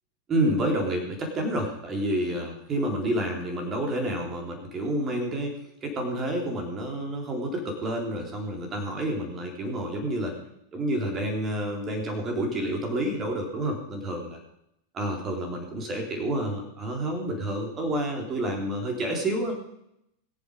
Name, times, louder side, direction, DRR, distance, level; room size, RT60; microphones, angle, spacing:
voice 1, 0.3-10.4 10.7-14.4 14.9-19.5, right 1 dB, 25° right, 2 dB, 4.0 m, -29 dB
22.5 x 7.5 x 5.2 m, 0.80 s
figure-of-eight pair, 90°, 0 cm